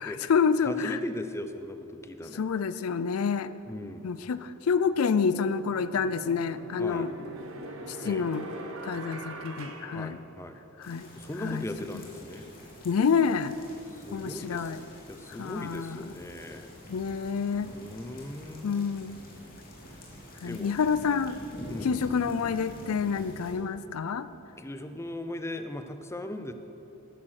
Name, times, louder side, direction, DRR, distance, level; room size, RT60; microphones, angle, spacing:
voice 1, 0.0-1.0 2.3-3.5 4.0-7.1 7.9-8.4 8.8-10.2 10.8-11.1 11.4-11.7 12.8-13.5 14.1-14.8 15.4-16.0 16.9-17.7 18.6-19.2 20.4-21.4 21.8-24.3, left 6 dB, 75° left, 14 dB, 0.4 m, -28 dB
voice 2, 0.6-2.4 3.7-4.1 6.8-7.1 8.0-8.3 9.9-10.6 11.1-12.5 13.9-14.8 15.1-16.7 17.6-18.9 20.4-20.7 21.7-22.0 24.6-26.5, left 1 dB, 10° left, 8 dB, 0.6 m, -38 dB
sound 1, 4.9-5.0 5.6-10.8, right 2 dB, 65° right, 1.2 m, -42 dB
sound 2, 10.8-23.5, equal, 40° left, 2.6 m, -46 dB
12.5 x 10.0 x 6.5 m, 2.9 s
head